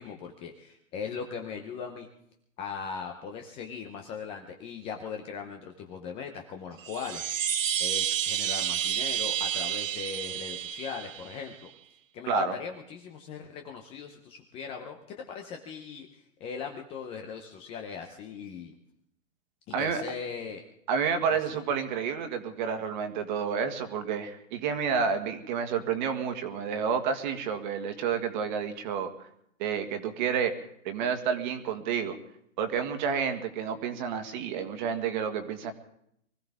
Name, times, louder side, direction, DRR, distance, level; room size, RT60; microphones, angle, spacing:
voice 1, 0.0-2.1 2.6-7.3 7.8-11.7 12.1-18.8 19.7-20.6 21.5-21.6, left 6 dB, 15° left, 4 dB, 0.8 m, -39 dB
Chime, 6.8-11.5, right 10 dB, 70° right, 0.8 m, -30 dB
voice 2, 19.7-20.0 20.9-29.1 29.6-30.5 30.9-32.2 32.6-35.7, right 6 dB, 35° right, 7 dB, 1.9 m, -30 dB
24.0 x 15.0 x 3.6 m, 0.74 s
hypercardioid pair, 145°, 40 cm